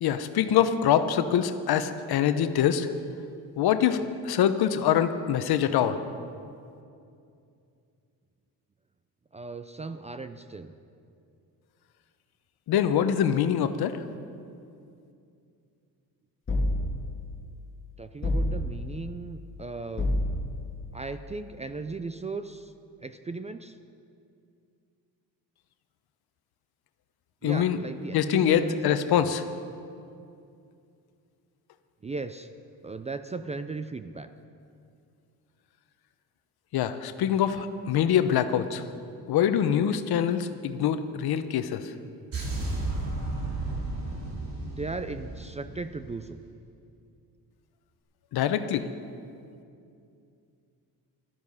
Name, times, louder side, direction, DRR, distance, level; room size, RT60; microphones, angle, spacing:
voice 1, 0.0-2.9 3.6-6.0 12.7-14.0 27.4-27.8 28.1-29.4 36.7-38.8 39.3-41.9 48.3-48.9, left 9 dB, 65° left, 10 dB, 0.9 m, -24 dB
voice 2, 9.3-10.7 18.0-20.1 20.9-22.7 23.0-23.8 27.4-28.8 29.2-29.3 32.0-32.5 32.8-34.3 44.7-46.4, right 3 dB, 20° right, 10 dB, 0.4 m, -37 dB
sound 1, 16.5-17.2 18.2-19.0 20.0-20.7, left 1 dB, 30° left, 1.7 m, -28 dB
sound 2, 42.3-46.4, right 2 dB, 55° right, 3.8 m, -33 dB
14.5 x 12.5 x 5.6 m, 2.5 s
cardioid pair, 110°, 40 cm